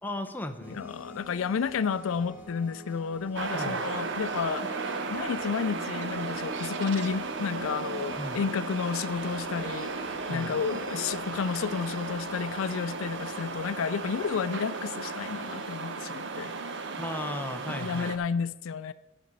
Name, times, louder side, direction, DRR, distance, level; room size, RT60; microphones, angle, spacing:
voice 1, 0.0-0.8 3.5-3.8 8.2-8.4 10.3-10.5 17.0-18.1, left 1 dB, 10° left, 5 dB, 0.7 m, -36 dB
sound 1, 0.6-14.5, equal, 10° right, 1.5 m, -47 dB
voice 2, 0.7-16.5 17.7-18.9, left 6 dB, 85° left, 15 dB, 0.4 m, -31 dB
sound 2, 3.4-18.2, right 4 dB, 60° right, 0.8 m, -35 dB
11.5 x 5.0 x 6.7 m, 0.99 s
head